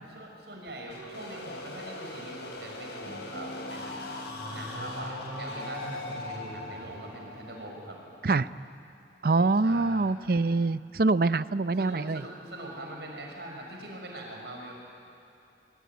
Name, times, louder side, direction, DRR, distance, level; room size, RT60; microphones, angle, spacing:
voice 1, 0.1-4.1 4.5-8.0 9.6-10.1 11.8-14.7, right 1 dB, 70° right, 0 dB, 6.2 m, -42 dB
sound 1, 0.9-8.6, left 2 dB, 75° left, 4.2 m, -41 dB
sound 2, 3.0-8.5, left 1 dB, 40° left, 0.9 m, -49 dB
sound 3, 4.2-7.6, equal, 35° right, 6.3 m, -43 dB
voice 2, 9.2-12.2, right 3 dB, 55° right, 15 dB, 0.5 m, -25 dB
25.0 x 22.5 x 9.4 m, 2.5 s
head